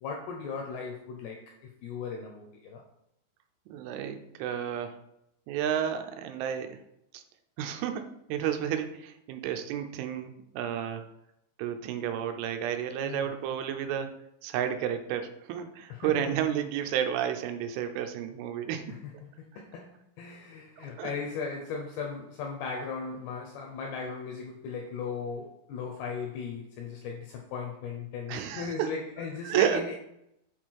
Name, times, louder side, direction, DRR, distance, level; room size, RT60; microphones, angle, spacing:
voice 1, 0.0-2.8 13.0-13.3 15.9-16.3 18.9-19.1 19.6-19.9 20.2-30.0, left 5 dB, 80° left, 1 dB, 2.5 m, -37 dB
voice 2, 3.7-5.0 5.5-6.8 7.1-7.2 7.6-11.0 11.6-14.2 14.4-19.0 20.8-21.1 28.3-28.9 29.4-30.0, right 9 dB, 80° right, 7 dB, 3.1 m, -31 dB
7.9 x 4.4 x 4.6 m, 0.80 s
omnidirectional pair, 5.7 m